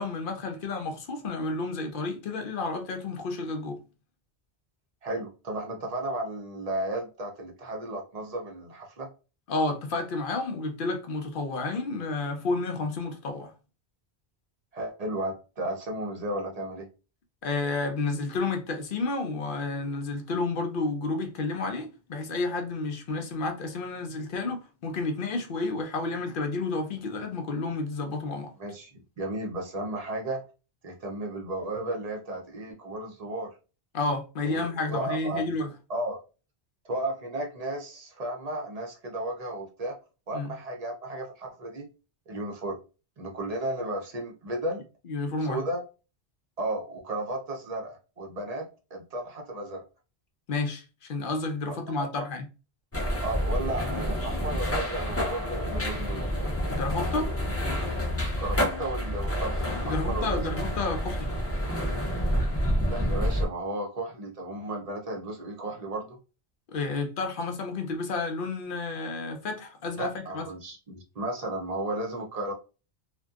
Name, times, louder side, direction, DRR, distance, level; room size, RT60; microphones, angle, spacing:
voice 1, 0.0-3.8 9.5-13.5 17.4-28.5 33.9-35.7 40.3-40.5 45.1-45.6 50.5-52.5 56.7-57.3 59.8-61.3 66.7-70.4, left 3 dB, 60° left, 0.6 m, -31 dB
voice 2, 5.0-9.1 14.7-16.9 28.6-30.4 30.8-33.5 34.4-35.6 35.9-36.2 36.9-40.0 40.3-41.9 42.3-42.8 43.2-44.8 45.4-45.8 46.6-49.8 52.0-52.3 53.2-56.3 58.4-60.4 62.9-66.2 70.0-72.5, right 1 dB, 45° right, 0.6 m, -34 dB
sound 1, 52.9-63.5, equal, 25° left, 0.3 m, -28 dB
2.6 x 2.1 x 2.3 m
omnidirectional pair, 1.1 m